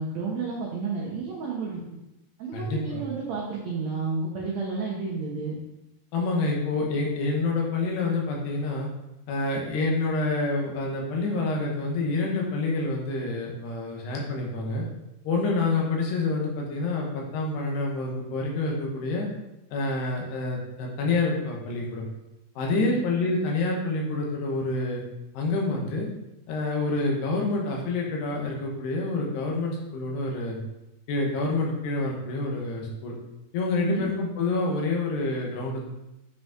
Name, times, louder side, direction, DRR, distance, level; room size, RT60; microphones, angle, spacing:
voice 1, 0.0-1.8 2.4-5.6 22.7-23.0 33.8-34.1, right 4 dB, 85° right, -3 dB, 1.5 m, -31 dB
voice 2, 2.5-3.0 6.1-8.9 9.3-14.8 15.2-19.3 19.7-22.1 22.6-25.0 25.3-26.1 26.5-30.6 31.1-33.1 33.5-35.8, left 3 dB, 80° left, -1 dB, 3.4 m, -27 dB
8.8 x 5.3 x 3.7 m, 0.92 s
omnidirectional pair, 4.8 m